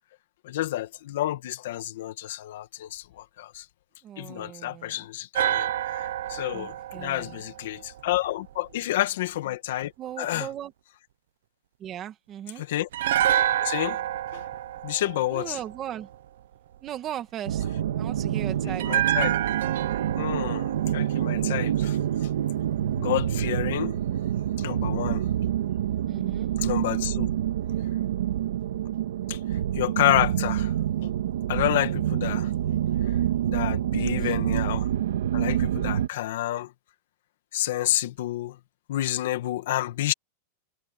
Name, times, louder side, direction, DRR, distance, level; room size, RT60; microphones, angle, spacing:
voice 1, 0.4-3.6 4.2-9.9 10.2-10.5 12.6-12.9 13.6-14.0 14.3-14.4 14.8-15.6 18.6-19.3 20.2-22.0 23.0-24.0 24.6-25.3 26.6-27.3 29.3-29.4 29.7-30.7 31.5-32.5 33.5-34.9 35.3-36.7 37.5-38.6 38.9-40.1, left 14 dB, 55° left, 2.0 m, -29 dB
voice 2, 4.0-5.0 6.5-7.4 10.0-10.7 11.8-12.6 15.3-16.1 16.8-17.6 18.0-18.9 26.1-26.5 33.9-34.4, right 11 dB, 20° right, 1.7 m, -37 dB
sound 1, 5.3-8.5 12.9-16.1 18.8-22.0 22.3-22.4, right 12 dB, 65° right, 0.7 m, -29 dB
sound 2, 17.5-36.1, right 11 dB, 90° right, 2.0 m, -27 dB
supercardioid pair, 175°, 0 cm